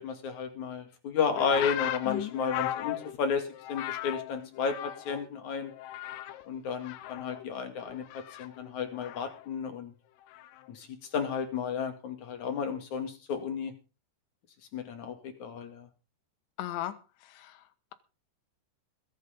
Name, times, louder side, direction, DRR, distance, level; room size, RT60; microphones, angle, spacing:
voice 1, 0.0-5.7 6.5-9.9 10.7-10.9 11.1-13.7 14.7-15.9, left 6 dB, 50° left, 3.2 m, -33 dB
sound 1, 1.4-5.3 5.6-6.5 6.8-9.5 10.3-10.7, left 13 dB, 75° left, 2.6 m, -37 dB
voice 2, 2.1-2.4 16.6-17.9, left 13 dB, 90° left, 3.5 m, -38 dB
21.5 x 8.3 x 5.2 m
omnidirectional pair, 5.2 m